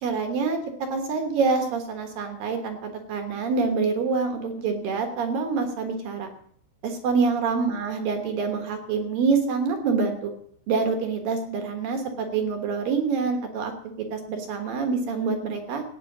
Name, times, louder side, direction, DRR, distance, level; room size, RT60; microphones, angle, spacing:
voice 1, 0.0-6.3 6.8-10.3 10.7-13.7 14.0-15.8, right 4 dB, 65° right, 5 dB, 2.6 m, -26 dB
16.0 x 9.2 x 6.1 m, 0.65 s
omnidirectional pair, 5.4 m